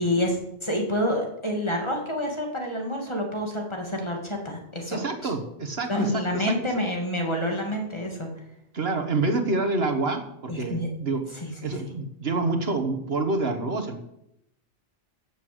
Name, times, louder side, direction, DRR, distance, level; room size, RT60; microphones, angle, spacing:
voice 1, 0.0-5.3 5.9-8.4 10.5-10.9 11.4-11.7, left 1 dB, 25° left, 1 dB, 2.7 m, -28 dB
voice 2, 4.9-6.5 8.7-11.2 11.6-14.0, right 3 dB, 65° right, 6 dB, 1.7 m, -27 dB
12.5 x 7.5 x 7.9 m, 0.81 s
omnidirectional pair, 1.1 m